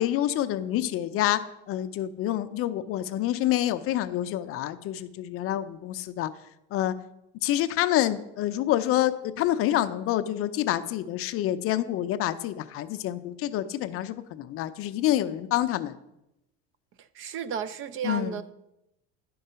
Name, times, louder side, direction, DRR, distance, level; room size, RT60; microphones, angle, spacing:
voice 1, 0.0-6.3 6.7-6.9 7.4-16.0 18.0-18.4, left 13 dB, 45° left, 11 dB, 0.4 m, -27 dB
voice 2, 17.1-18.5, right 7 dB, 40° right, 14 dB, 0.4 m, -33 dB
11.0 x 3.8 x 5.6 m, 0.87 s
cardioid pair, 130°, 33 cm